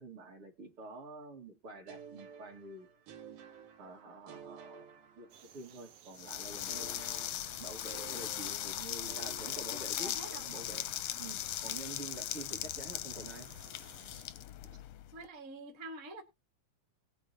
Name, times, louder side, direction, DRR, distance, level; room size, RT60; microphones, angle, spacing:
voice 1, 0.0-2.9 3.8-4.9 5.2-5.3 5.5-7.0 7.6-10.9 11.2-13.5, right 2 dB, 45° right, 2.6 m, -48 dB
sound 1, 1.9-5.8 6.7-10.5, right 7 dB, 80° right, 3.1 m, -53 dB
sound 2, 5.3-14.2, right 9 dB, 65° right, 1.9 m, -59 dB
sound 3, 6.2-15.2, left 13 dB, 75° left, 1.5 m, -39 dB
voice 2, 9.7-10.4 15.1-16.2, right 2 dB, 30° right, 1.7 m, -46 dB
19.0 x 8.9 x 2.8 m
omnidirectional pair, 3.6 m